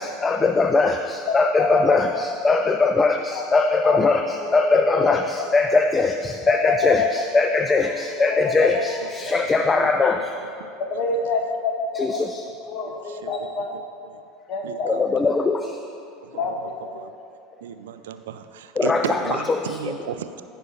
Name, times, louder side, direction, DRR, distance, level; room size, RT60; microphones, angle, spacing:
voice 1, 0.0-10.3 12.0-12.4 14.9-15.8 18.8-19.4, left 3 dB, 20° left, 6 dB, 0.4 m, -21 dB
voice 2, 1.3-2.2 3.0-3.4 3.8-4.0 4.4-5.2 6.5-7.4 7.8-9.5 10.8-12.2 12.7-13.8 14.5-15.0 16.3-16.5 16.8-17.1, left 4 dB, 45° left, 3 dB, 1.0 m, -27 dB
voice 3, 8.4-8.7 10.2-10.7 13.1-13.3 13.7-14.2 14.6-15.2 16.2-17.1 17.6-20.4, right 9 dB, 65° right, 10 dB, 0.3 m, -35 dB
15.5 x 5.4 x 2.9 m, 2.5 s
figure-of-eight pair, 75°, 0 cm